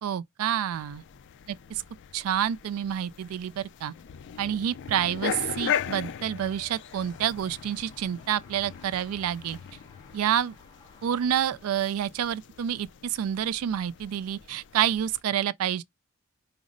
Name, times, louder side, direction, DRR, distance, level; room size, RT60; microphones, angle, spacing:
voice 1, 0.0-1.0 1.5-1.6 2.1-3.9 4.4-9.6 10.1-10.5 11.0-15.8, right 10 dB, 75° right, 0.3 m, -28 dB
sound 1, 0.7-15.2, left 8 dB, 55° left, 0.4 m, -39 dB
sound 2, 6.4-11.7, left 3 dB, 20° left, 0.9 m, -56 dB
5.0 x 2.0 x 3.7 m
head